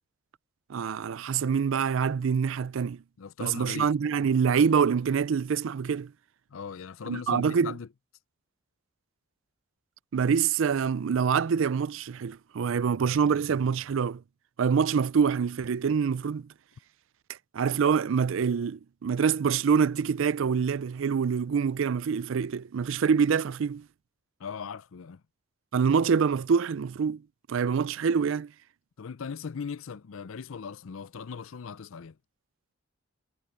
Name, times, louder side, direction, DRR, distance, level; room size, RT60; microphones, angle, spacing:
voice 1, 0.7-3.0 3.4-6.1 7.1-7.7 10.1-14.2 14.6-16.5 17.5-23.8 25.7-27.2 27.5-28.5, right 6 dB, 65° right, 0.4 m, -25 dB
voice 2, 3.2-3.9 6.5-7.9 24.4-25.2 29.0-32.2, left 6 dB, 75° left, 0.5 m, -39 dB
head